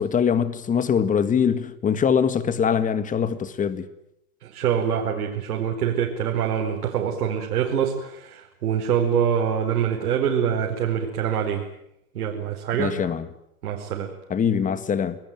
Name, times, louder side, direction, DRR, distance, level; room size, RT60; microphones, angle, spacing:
voice 1, 0.0-3.9 12.8-13.3 14.3-15.2, left 7 dB, 15° left, 1.8 m, -23 dB
voice 2, 4.4-11.7 12.1-13.0 13.6-14.1, right 8 dB, 75° right, 4.8 m, -25 dB
28.5 x 20.5 x 9.2 m
hypercardioid pair, 135°, 46 cm